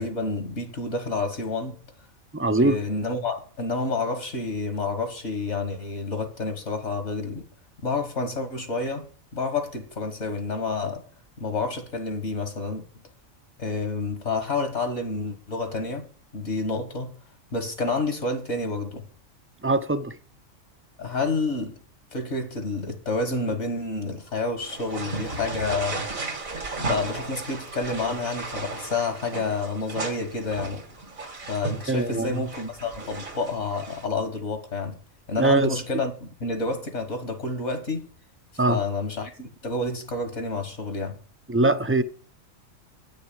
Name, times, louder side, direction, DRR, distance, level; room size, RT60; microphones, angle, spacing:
voice 1, 0.0-1.8 2.6-7.4 7.8-9.1 9.3-11.0 11.4-12.8 13.6-16.1 16.3-17.1 17.5-19.1 21.0-21.8 22.1-26.1 26.8-30.8 31.5-35.0 35.3-38.1 38.7-41.2, left 3 dB, 60° left, 1.9 m, -29 dB
voice 2, 2.3-2.8 19.6-20.1 31.9-32.4 35.4-35.8 38.6-38.8 41.5-42.0, right 2 dB, 15° right, 0.4 m, -22 dB
sound 1, 24.6-34.1, right 3 dB, 85° right, 2.6 m, -35 dB
9.5 x 6.5 x 8.5 m
omnidirectional pair, 1.4 m